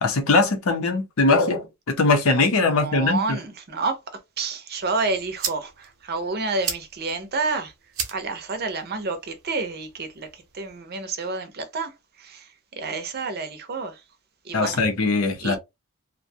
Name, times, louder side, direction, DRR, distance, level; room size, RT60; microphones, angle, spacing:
voice 1, 0.0-3.2 14.5-15.6, left 3 dB, 75° left, 0.7 m, -21 dB
voice 2, 2.6-7.7 8.1-14.0 14.4-14.8 15.4-15.6, right 3 dB, 45° right, 0.6 m, -29 dB
sound 1, 4.8-10.8, right 7 dB, 85° right, 0.8 m, -37 dB
2.6 x 2.1 x 2.6 m
head